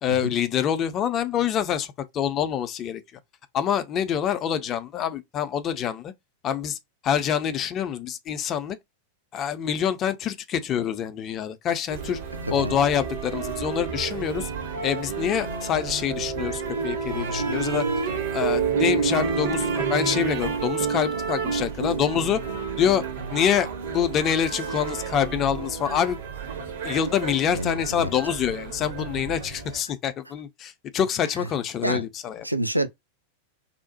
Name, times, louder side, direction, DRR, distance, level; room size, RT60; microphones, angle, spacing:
voice 1, 0.0-3.0 3.5-6.1 6.4-6.8 7.0-8.8 9.3-12.2 12.5-14.5 14.8-17.9 18.3-22.4 22.8-23.0 23.3-26.2 26.8-32.5, left 9 dB, 30° left, 0.4 m, -26 dB
sound 1, 11.9-29.8, right 5 dB, 60° right, 0.8 m, -29 dB
voice 2, 27.5-28.1 31.4-31.5 31.8-32.0 32.4-32.9, right 1 dB, 85° right, 0.3 m, -27 dB
2.7 x 2.0 x 2.7 m
figure-of-eight pair, 90°, 0 cm